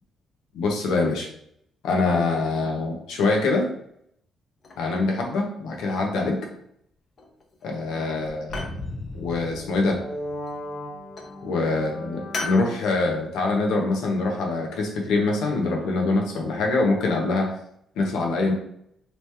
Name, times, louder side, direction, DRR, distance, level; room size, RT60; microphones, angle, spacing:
voice 1, 0.5-1.3 1.8-3.7 4.8-6.4 7.6-8.6 9.2-10.0 11.4-17.5 18.0-18.5, left 3 dB, 85° left, 1 dB, 0.9 m, -24 dB
sound 1, 4.6-5.4 5.7-6.4 7.2-7.6 7.9-8.8 10.2-10.8 11.2-11.4 12.3-12.7, left 2 dB, 45° left, 0.6 m, -36 dB
sound 2, 8.5-12.9, left 1 dB, 65° left, 1.1 m, -36 dB
3.1 x 2.9 x 3.3 m, 0.70 s
cardioid pair, 90°, 0 cm